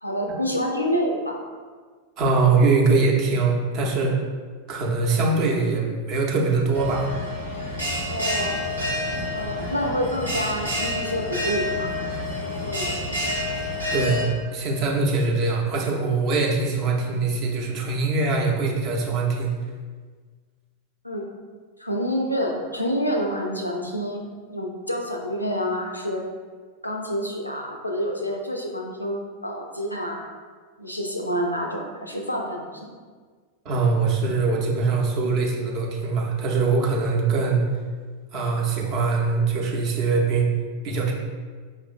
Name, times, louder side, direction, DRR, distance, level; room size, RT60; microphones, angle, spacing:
voice 1, 0.0-1.4 8.1-8.5 9.3-11.9 12.6-13.0 21.0-21.3 21.8-24.2 24.5-26.2 26.8-30.2 30.8-32.7, equal, 85° left, 1 dB, 0.4 m, -27 dB
voice 2, 2.2-4.2 4.7-7.1 13.9-14.2 14.5-19.5 33.6-37.6 38.3-40.5 40.8-41.1, right 4 dB, 40° right, -1 dB, 0.6 m, -22 dB
Bell, 6.7-14.2, left 1 dB, 90° right, 0.9 m, -28 dB
5.1 x 2.5 x 2.4 m, 1.6 s
figure-of-eight pair, 90°, 0 cm